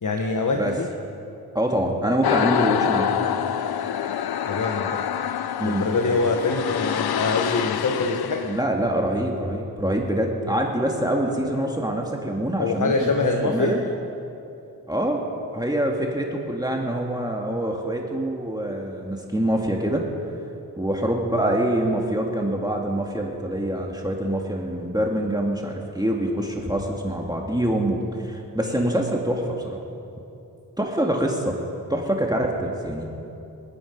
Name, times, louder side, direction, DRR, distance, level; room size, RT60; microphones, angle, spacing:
voice 1, 0.0-0.9 4.5-5.0 5.6-8.4 12.6-13.7 28.6-28.9, left 3 dB, 55° left, 3 dB, 1.2 m, -24 dB
voice 2, 1.5-3.1 5.6-5.8 8.4-13.8 14.9-15.2 15.5-20.0 20.8-29.8 30.8-31.6 31.9-33.2, right 1 dB, 10° right, 0 dB, 2.0 m, -25 dB
sound 1, 2.2-8.6, left 9 dB, 85° left, 0.6 m, -26 dB
25.0 x 9.2 x 5.3 m, 2.8 s
cardioid pair, 40°, 37 cm